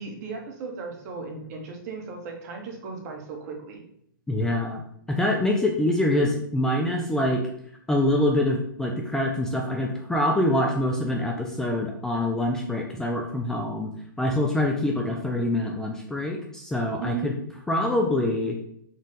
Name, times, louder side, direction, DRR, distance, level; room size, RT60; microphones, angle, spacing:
voice 1, 0.0-3.8 17.0-17.3, right 5 dB, 45° right, 2 dB, 1.0 m, -36 dB
voice 2, 4.3-4.8 5.1-7.4 7.9-13.9 14.2-17.3 17.7-18.6, left 1 dB, 5° left, 0 dB, 0.3 m, -25 dB
3.8 x 2.4 x 4.0 m, 0.69 s
hypercardioid pair, 135°, 12 cm